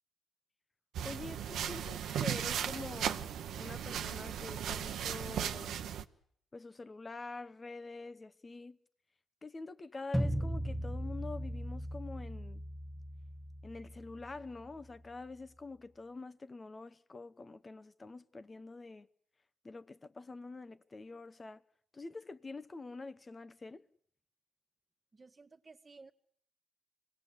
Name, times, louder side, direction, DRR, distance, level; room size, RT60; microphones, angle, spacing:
sound 1, 0.9-6.0, right 9 dB, 75° right, 1.0 m, -37 dB
voice 1, 1.0-3.3 3.6-5.8 6.5-8.8 9.4-12.6 13.6-19.1 19.6-21.6 21.9-23.8, left 3 dB, 25° left, 1.0 m, -46 dB
sound 2, 10.1-15.2, equal, ahead, 1.2 m, -38 dB
voice 2, 25.1-26.1, right 3 dB, 25° right, 1.7 m, -56 dB
26.0 x 18.5 x 8.4 m
cardioid pair, 90°, 0 cm